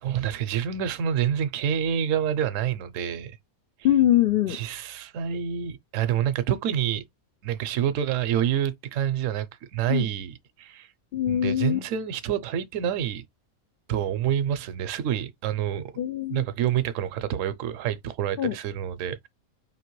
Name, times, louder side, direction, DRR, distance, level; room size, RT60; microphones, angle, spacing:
voice 1, 0.0-3.4 4.5-7.0 7.4-9.5 9.7-10.9 11.3-13.2 13.9-15.9 16.3-19.3, right 9 dB, 70° right, 0.9 m, -27 dB
voice 2, 3.8-4.6 9.9-10.0 11.1-11.8 16.0-16.4 18.4-18.5, left 12 dB, 80° left, 0.5 m, -22 dB
4.8 x 2.9 x 3.0 m
omnidirectional pair, 1.5 m